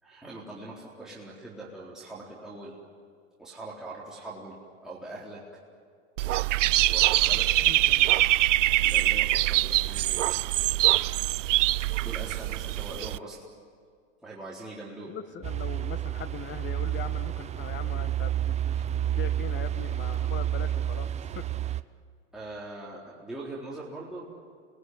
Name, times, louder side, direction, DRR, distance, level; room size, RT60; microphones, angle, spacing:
voice 1, 0.0-2.8 3.4-4.6 4.8-5.4 6.8-7.7 8.8-10.8 12.0-13.4 14.2-15.1 22.3-24.3, right 2 dB, ahead, -7 dB, 4.0 m, -42 dB
Dog / Bird, 6.2-13.2, right 16 dB, 75° right, 0.6 m, -24 dB
voice 2, 7.6-8.1 15.1-21.5, left 9 dB, 30° left, 11 dB, 1.6 m, -41 dB
sound 1, 15.4-21.8, right 11 dB, 20° right, 0.6 m, -30 dB
28.5 x 20.5 x 9.6 m, 2.1 s
hypercardioid pair, 110°, 37 cm